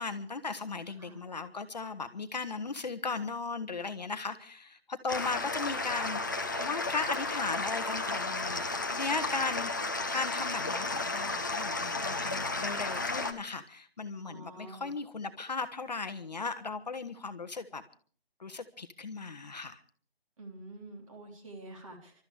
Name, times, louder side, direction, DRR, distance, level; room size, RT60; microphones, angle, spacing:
voice 1, 0.0-9.7 10.1-17.8 18.4-19.8, left 4 dB, 45° left, 9 dB, 1.1 m, -37 dB
sound 1, 5.1-13.3, left 3 dB, 20° left, 0.7 m, -33 dB
voice 2, 14.2-14.9 20.4-22.1, right 2 dB, 35° right, 2 dB, 3.7 m, -47 dB
28.5 x 13.0 x 3.4 m, 0.43 s
hypercardioid pair, 175°, 31 cm